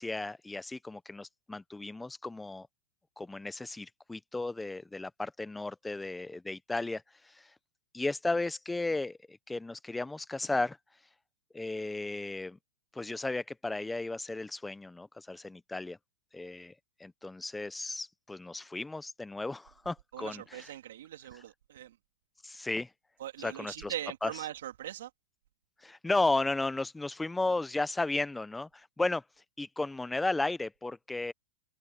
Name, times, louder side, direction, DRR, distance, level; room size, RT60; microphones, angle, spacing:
voice 1, 0.0-2.7 3.2-7.5 7.9-10.8 11.5-12.6 12.9-16.0 16.3-16.7 17.0-20.7 22.4-22.9 23.4-23.9 24.2-24.3 25.8-29.2 29.6-31.3, left 2 dB, 5° left, 0.5 m, -34 dB
voice 2, 20.1-22.0 23.2-25.1, right 12 dB, 80° right, 2.7 m, -41 dB
supercardioid pair, 145°, 0 cm